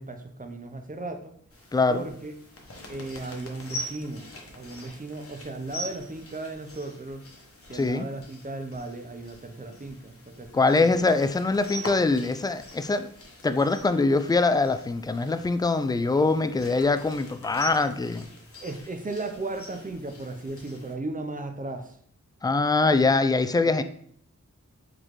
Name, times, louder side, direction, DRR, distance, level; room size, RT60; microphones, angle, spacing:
voice 1, 0.0-1.3 1.9-2.3 2.9-7.3 7.7-11.1 18.6-21.9, right 2 dB, 25° right, 6 dB, 0.6 m, -36 dB
sound 1, 1.5-20.9, equal, 45° left, 1.0 m, -44 dB
voice 2, 1.7-2.1 7.7-8.1 10.5-13.1 13.4-18.3 22.4-23.8, left 3 dB, 15° left, 10 dB, 0.3 m, -23 dB
4.0 x 3.1 x 3.1 m, 0.62 s
cardioid pair, 40°, 31 cm